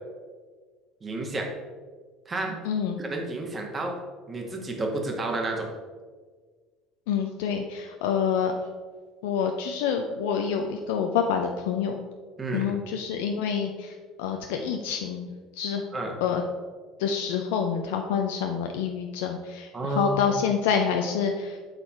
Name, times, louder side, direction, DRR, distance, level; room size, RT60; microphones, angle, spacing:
voice 1, 1.0-1.5 2.2-2.6 3.0-4.0 4.3-5.7 12.4-12.7 15.9-16.1 19.7-20.4, right 2 dB, 30° right, 2 dB, 1.5 m, -31 dB
voice 2, 2.6-3.0 7.1-8.5 9.2-12.0 12.5-15.8 16.2-16.4 17.0-21.6, left 7 dB, 70° left, 4 dB, 0.5 m, -27 dB
7.8 x 4.1 x 4.4 m, 1.5 s
figure-of-eight pair, 65°, 0 cm